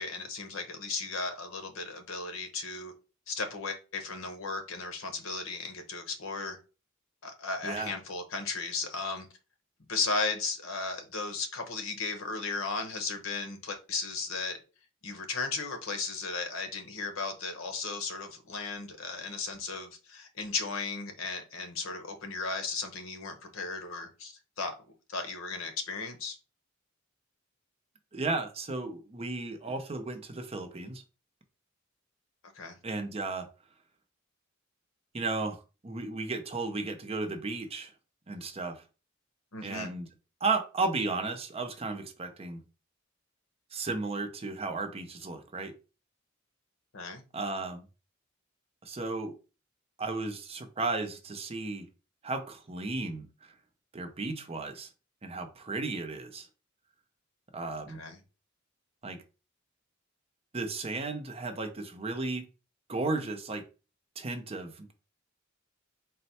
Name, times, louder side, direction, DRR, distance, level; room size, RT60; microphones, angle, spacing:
voice 1, 0.0-2.9 3.3-6.6 7.2-9.3 9.9-14.6 15.0-24.7 25.1-26.4 32.5-32.8 39.5-39.9 46.9-47.2 57.6-58.2, left 4 dB, 80° left, 0.9 m, -35 dB
voice 2, 28.1-31.0 32.8-33.5 35.1-35.6 35.8-37.9 38.3-38.8 39.6-40.1 40.4-42.6 43.7-45.7 47.3-47.8 48.8-49.3 50.0-51.8 52.2-53.3 53.9-54.9 55.2-56.5 57.5-58.0 59.0-59.2 60.5-62.4 62.9-63.6 64.2-64.9, right 3 dB, 30° right, 0.6 m, -34 dB
4.1 x 2.2 x 4.1 m
head